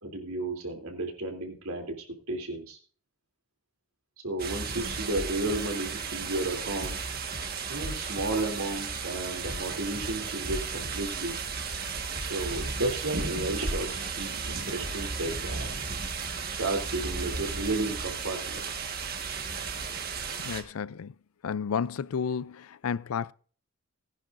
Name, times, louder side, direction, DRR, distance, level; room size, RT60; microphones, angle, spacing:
voice 1, 0.0-2.8 4.2-7.0 7.7-11.4 12.2-15.7 16.6-18.7, right 2 dB, 85° right, 3.1 m, -33 dB
sound 1, 4.4-20.6, right 5 dB, 45° right, 1.5 m, -34 dB
the cube bombo, 5.2-5.6 6.8-7.0 7.3-7.4 7.8-8.3 9.5-9.7 10.0-10.1 10.5-10.9 12.2-12.4 12.7-12.8 13.2-13.6 14.8-15.0 15.3-15.4, equal, 60° right, 2.1 m, -39 dB
sound 2, 9.4-10.5, equal, 20° left, 2.5 m, -51 dB
voice 2, 20.4-21.1 21.4-23.3, left 6 dB, 80° left, 0.4 m, -31 dB
19.5 x 10.5 x 2.6 m
head